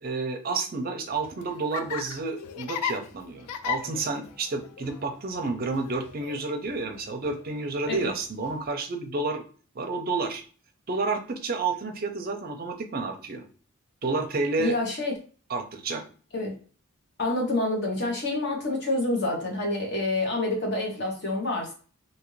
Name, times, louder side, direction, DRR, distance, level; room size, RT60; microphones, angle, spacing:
voice 1, 0.0-9.4 9.7-10.4 10.9-13.4 14.0-14.7 15.5-16.0, right 3 dB, 40° right, 5 dB, 0.5 m, -30 dB
Laughter, 1.1-8.7, left 8 dB, 90° left, 0.3 m, -38 dB
voice 2, 14.6-15.1 16.3-16.5 17.2-21.7, left 2 dB, 50° left, 0 dB, 0.9 m, -27 dB
2.7 x 2.5 x 3.1 m, 0.40 s
head